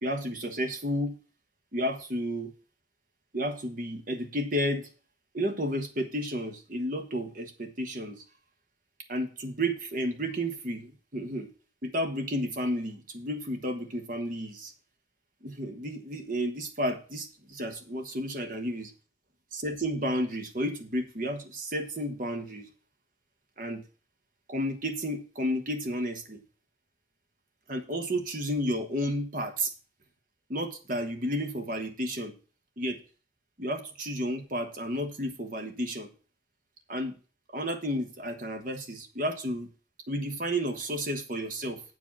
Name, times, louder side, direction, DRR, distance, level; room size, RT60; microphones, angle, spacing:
voice 1, 0.0-1.1 1.7-2.5 3.3-4.9 5.3-8.2 9.1-11.5 11.8-14.7 15.4-18.9 19.5-22.7 23.6-23.8 24.5-26.4 27.7-29.7 30.5-32.3 32.8-33.0 33.6-36.1 36.9-37.2 37.5-39.7 40.1-41.8, equal, 45° right, 6 dB, 1.3 m, -32 dB
7.9 x 5.0 x 7.2 m, 0.37 s
head